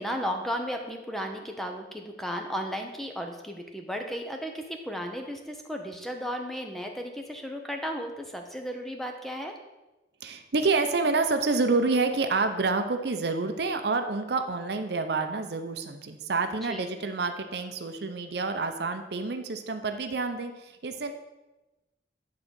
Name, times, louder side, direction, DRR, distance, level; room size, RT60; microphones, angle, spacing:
voice 1, 0.0-9.5 16.6-16.9, equal, ahead, 3 dB, 0.7 m, -34 dB
voice 2, 10.2-20.5 20.8-21.1, right 3 dB, 65° right, 7 dB, 0.6 m, -28 dB
9.3 x 3.8 x 6.2 m, 1.0 s
head